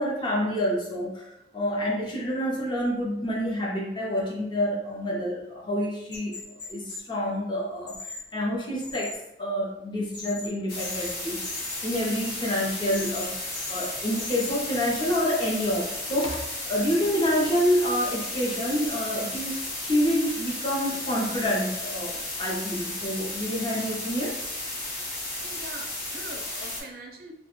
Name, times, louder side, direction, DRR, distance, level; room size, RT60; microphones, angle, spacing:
voice 1, 0.0-11.4 11.8-13.3 13.7-24.3, equal, 25° left, -3 dB, 0.5 m, -28 dB
sound 1, 6.1-7.0 7.9-8.2 8.8-9.2 10.1-10.5 10.8-11.1 11.4-11.8 12.9-13.3 13.5-13.9 14.2-14.5 15.1-16.5 18.1-18.9 19.3-20.0, left 3 dB, 80° left, 1.2 m, -39 dB
sound 2, 10.7-26.8, left 2 dB, 55° left, 0.7 m, -34 dB
voice 2, 25.4-27.3, right 2 dB, 55° right, 1 dB, 0.4 m, -43 dB
2.4 x 2.1 x 2.9 m, 0.86 s
head